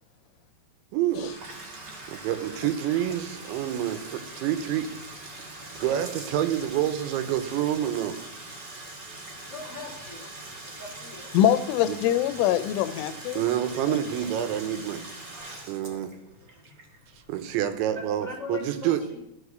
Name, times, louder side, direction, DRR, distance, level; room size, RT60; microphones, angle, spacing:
voice 1, 0.9-1.3 2.1-4.9 5.8-8.2 11.9-12.0 13.3-15.1 15.7-16.1 17.3-19.0, right 11 dB, 80° right, 3.2 m, -27 dB
Bathtub (filling or washing), 1.0-17.8, right 2 dB, 40° right, 1.6 m, -42 dB
voice 2, 9.4-10.3 10.6-11.3 17.9-19.2, left 3 dB, 10° left, 1.1 m, -40 dB
voice 3, 11.3-13.4 13.9-14.0, left 11 dB, 85° left, 3.2 m, -23 dB
15.0 x 5.9 x 6.6 m
omnidirectional pair, 5.5 m